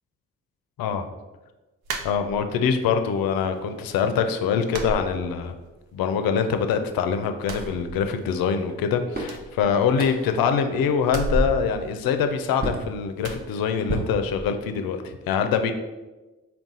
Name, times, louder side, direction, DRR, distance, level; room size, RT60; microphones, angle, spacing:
sound 1, 1.8-2.7 3.1-3.8 4.1-4.2 4.7-5.8 6.1-6.9 7.3-8.5 8.8-8.9 9.2-10.4 11.0-12.7 13.2-13.5, right 2 dB, 85° right, 0.5 m, -34 dB
voice 1, 2.0-5.5 5.9-15.7, left 6 dB, 75° left, 7 dB, 0.5 m, -24 dB
sound 2, 7.6-7.8 8.7-8.8 9.1-9.4 9.9-10.4 10.8-11.0 11.3-11.8 12.6-12.9 13.9-14.8, right 1 dB, 25° right, 0.9 m, -30 dB
3.9 x 2.3 x 3.7 m, 1.1 s
supercardioid pair, 40°, 35 cm